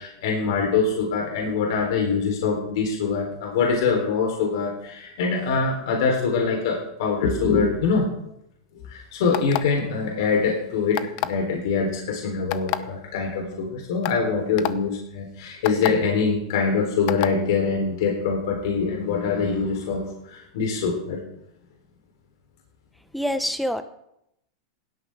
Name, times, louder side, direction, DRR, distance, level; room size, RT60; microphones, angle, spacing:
voice 1, 0.0-8.1 8.7-21.2, left 5 dB, 70° left, 0 dB, 3.8 m, -24 dB
sound 1, 9.3-9.8 10.9-11.4 12.5-12.8 13.5-13.6 14.0-14.2 14.6-14.7 15.6-15.9 17.1-17.3, left 17 dB, 55° left, 0.9 m, -26 dB
voice 2, 23.1-23.8, equal, ahead, 9 dB, 1.2 m, -25 dB
17.0 x 12.5 x 3.7 m, 0.80 s
hypercardioid pair, 115°, 2 cm